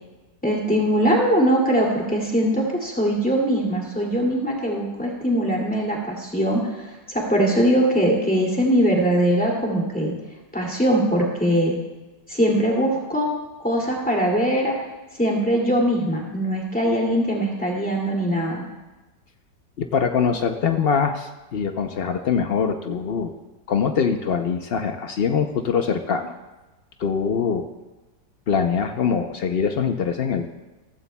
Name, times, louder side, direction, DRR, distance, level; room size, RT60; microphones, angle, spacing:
voice 1, 0.4-10.1 10.5-11.7 12.3-13.3 13.6-14.7 15.2-18.7, equal, 5° left, -2 dB, 2.2 m, -21 dB
voice 2, 19.8-23.3 23.7-26.3 27.0-27.7 28.5-30.5, left 6 dB, 80° left, 6 dB, 0.5 m, -23 dB
15.5 x 15.0 x 2.2 m, 1.1 s
omnidirectional pair, 1.9 m